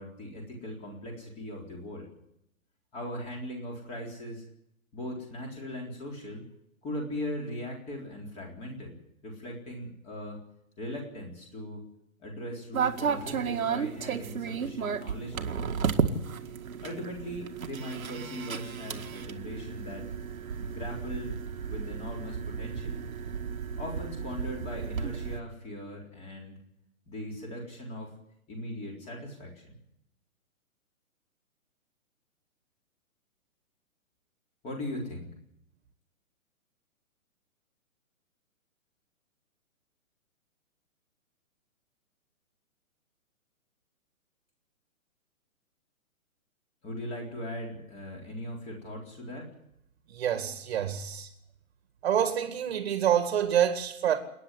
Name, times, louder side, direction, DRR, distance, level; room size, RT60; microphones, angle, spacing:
voice 1, 0.0-2.1 2.9-4.4 4.9-6.4 6.8-9.0 9.2-10.4 10.8-11.8 12.2-16.0 16.8-20.1 20.6-21.4 21.7-23.0 23.8-26.5 27.1-28.1 28.5-29.7 34.6-35.3 46.8-49.5, left 1 dB, 15° left, 3.9 m, -39 dB
sound 1, 12.7-25.4, right 6 dB, 75° right, 2.0 m, -33 dB
voice 2, 50.1-51.3 52.0-54.2, right 9 dB, 45° right, 2.3 m, -27 dB
29.0 x 9.9 x 9.7 m
hypercardioid pair, 165°, 42 cm